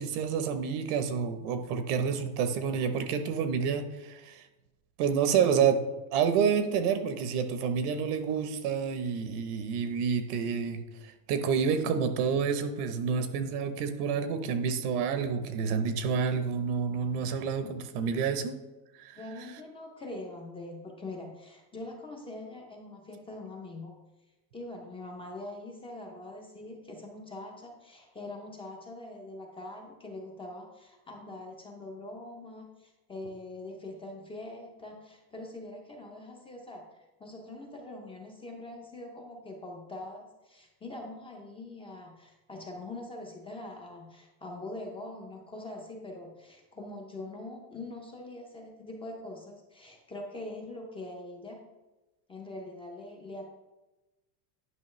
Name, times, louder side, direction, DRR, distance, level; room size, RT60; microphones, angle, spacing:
voice 1, 0.0-4.4 5.0-5.8 6.1-18.6 19.0-19.2, right 6 dB, 70° right, 9 dB, 1.0 m, -29 dB
voice 2, 19.1-23.9 24.5-36.8 37.2-51.6 52.3-53.5, left 2 dB, 10° left, 0 dB, 0.5 m, -43 dB
9.5 x 5.7 x 3.2 m, 1.1 s
supercardioid pair, 160°, 48 cm